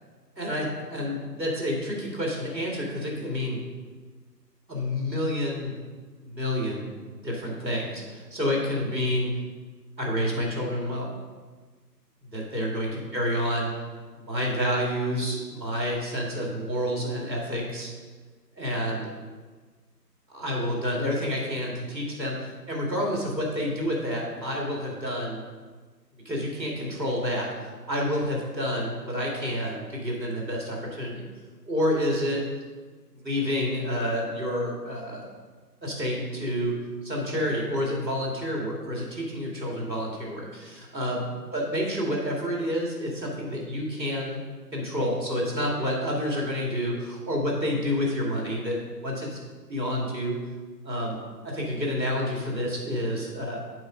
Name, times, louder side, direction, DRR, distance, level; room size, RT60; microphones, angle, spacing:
voice 1, 0.4-3.6 4.7-5.7 6.2-6.9 7.2-9.3 10.0-11.1 12.3-13.7 14.1-17.9 18.6-19.1 20.3-25.4 26.2-27.5 27.9-31.3 31.7-32.4 33.1-35.3 35.8-36.8 37.0-41.2 41.5-44.4 44.7-49.4 49.7-50.4 50.8-51.2 51.4-53.6, equal, 90° right, -2 dB, 2.6 m, -29 dB
7.8 x 4.9 x 5.2 m, 1.4 s
figure-of-eight pair, 145°, 50 cm